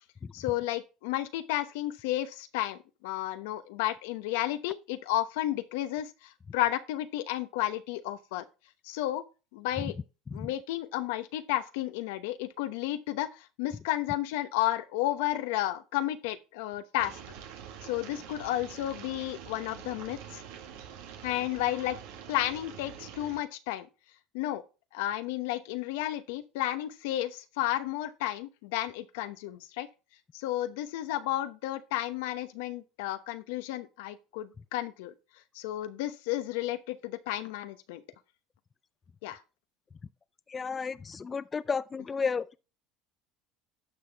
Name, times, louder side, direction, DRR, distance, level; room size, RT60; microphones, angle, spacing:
voice 1, 0.3-8.4 8.8-9.2 9.5-9.9 10.3-17.2 17.8-20.4 21.2-22.0 22.3-23.9 24.3-24.6 24.9-29.9 30.3-35.1 35.5-38.0 39.2-39.4, left 14 dB, 80° left, 0.9 m, -32 dB
sound 1, 17.0-23.4, right 8 dB, 80° right, 1.6 m, -46 dB
voice 2, 40.5-42.6, left 5 dB, 25° left, 0.4 m, -32 dB
11.5 x 6.1 x 3.5 m
supercardioid pair, 95°, 0 cm